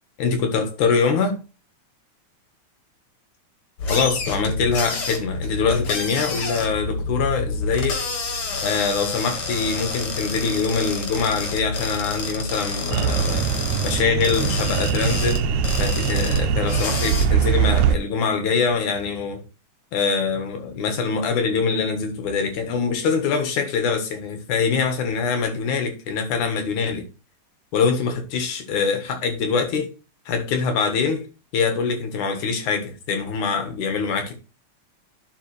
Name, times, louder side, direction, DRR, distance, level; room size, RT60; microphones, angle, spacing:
voice 1, 0.2-1.4 3.9-19.4 19.9-27.1 27.7-29.9 30.3-31.3 31.5-34.3, left 5 dB, 90° left, 3.1 m, -24 dB
sound 1, 3.8-17.3, left 3 dB, 50° left, 2.6 m, -28 dB
sound 2, 12.9-18.0, right 9 dB, 85° right, 2.0 m, -22 dB
11.0 x 5.0 x 3.3 m
omnidirectional pair, 3.4 m